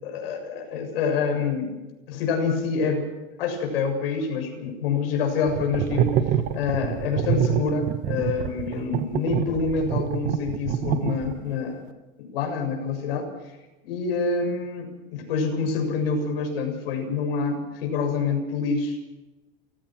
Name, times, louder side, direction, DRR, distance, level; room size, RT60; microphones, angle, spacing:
voice 1, 0.0-1.8 2.1-3.1 3.4-6.2 6.5-11.9 12.2-13.3 13.8-19.0, left 5 dB, 70° left, 4 dB, 7.2 m, -27 dB
sound 1, 5.5-11.6, right 10 dB, 30° right, 1.2 m, -26 dB
28.5 x 16.5 x 6.2 m, 1.1 s
supercardioid pair, 175°, 30 cm